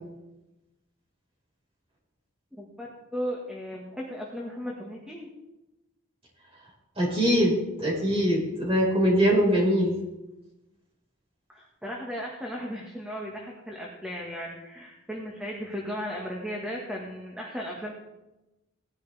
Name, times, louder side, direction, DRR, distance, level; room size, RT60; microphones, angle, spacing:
voice 1, 2.6-5.3 11.5-17.9, equal, 5° right, -2 dB, 1.7 m, -36 dB
voice 2, 6.9-9.9, equal, 25° right, -3 dB, 5.1 m, -23 dB
18.5 x 11.5 x 3.5 m, 0.99 s
head